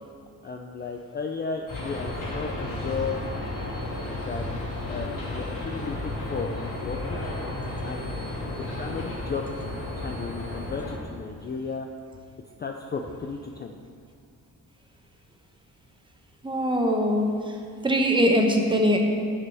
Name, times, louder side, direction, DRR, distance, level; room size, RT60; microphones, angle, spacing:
voice 1, 0.4-3.2 4.1-4.4 4.9-7.2 7.8-9.5 10.0-11.9 12.6-13.7, left 5 dB, 30° left, 3 dB, 0.3 m, -34 dB
sound 1, 1.7-10.9, left 2 dB, 60° left, 2.4 m, -33 dB
voice 2, 16.4-19.0, equal, 15° right, 2 dB, 0.8 m, -22 dB
12.5 x 6.7 x 3.5 m, 2.3 s
wide cardioid pair, 165°, 36 cm